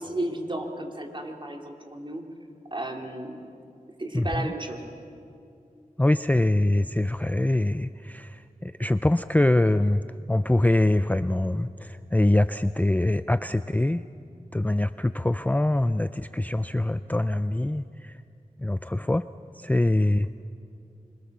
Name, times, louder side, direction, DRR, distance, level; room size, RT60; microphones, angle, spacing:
voice 1, 0.0-2.2 2.7-3.4 4.0-4.8, right 1 dB, 35° right, 2 dB, 3.2 m, -33 dB
voice 2, 4.1-4.5 6.0-10.0 10.3-14.0 14.5-18.1 18.6-19.3 19.5-20.3, left 1 dB, 10° left, 12 dB, 0.5 m, -24 dB
25.5 x 23.0 x 6.9 m, 2.5 s
cardioid pair, 50°, 14 cm